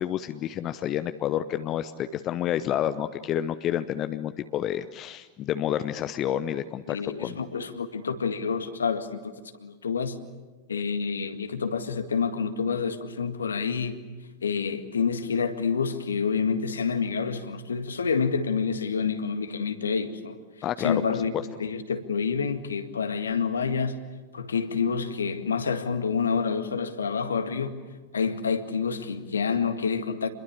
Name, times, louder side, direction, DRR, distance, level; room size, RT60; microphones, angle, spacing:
voice 1, 0.0-7.4 20.6-21.2, left 11 dB, 35° left, 12 dB, 0.9 m, -29 dB
voice 2, 6.9-9.3 9.6-10.2 10.7-14.0 14.4-20.4 20.8-21.3 21.6-24.0 24.3-27.8 28.1-30.3, left 5 dB, 70° left, 8 dB, 1.9 m, -28 dB
28.0 x 22.0 x 8.4 m, 1.3 s
figure-of-eight pair, 90°, 0 cm